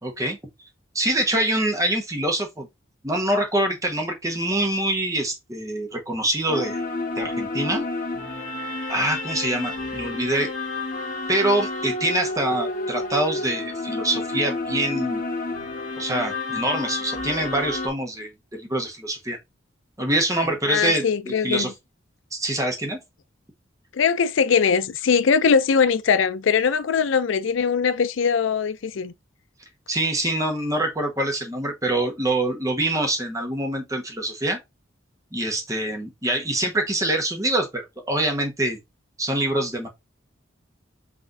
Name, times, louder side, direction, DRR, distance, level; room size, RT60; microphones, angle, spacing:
voice 1, 0.0-0.4 0.9-2.7 3.0-6.8 7.2-7.9 8.9-10.5 11.3-15.2 16.0-19.4 20.0-21.7 22.3-23.0 29.9-34.6 35.3-38.8 39.2-39.9, right 1 dB, 15° right, 1.2 m, -25 dB
sound 1, 6.5-17.9, left 2 dB, 40° left, 1.5 m, -30 dB
voice 2, 20.7-21.7 23.9-29.1, left 6 dB, 70° left, 0.4 m, -21 dB
5.9 x 3.4 x 2.6 m
head